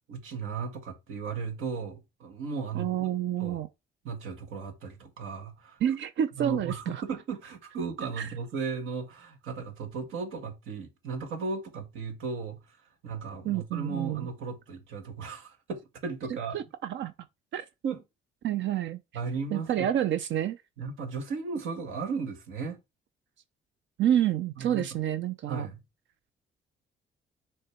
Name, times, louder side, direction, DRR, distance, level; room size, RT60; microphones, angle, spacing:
voice 1, 0.1-3.1 3.4-3.6 4.0-5.8 6.4-16.6 17.8-18.0 19.1-19.9 20.8-22.8 24.6-25.0 25.5-25.8, right 5 dB, 85° right, 1.9 m, -36 dB
voice 2, 2.7-3.7 5.8-7.0 8.2-8.3 13.5-14.3 16.5-17.1 17.5-17.7 18.4-19.0 19.5-20.6 24.0-25.7, right 10 dB, 70° right, 0.7 m, -28 dB
6.5 x 3.4 x 4.5 m
cardioid pair, 90°, 20 cm